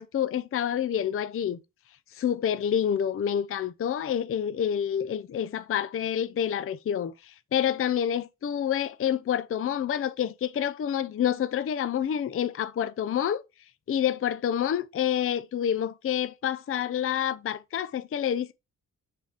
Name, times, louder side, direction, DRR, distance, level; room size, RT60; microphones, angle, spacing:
voice 1, 0.0-1.6 2.1-13.4 13.9-18.5, left 9 dB, 40° left, 0.4 m, -28 dB
6.6 x 3.4 x 5.0 m
wide cardioid pair, 120°, 35 cm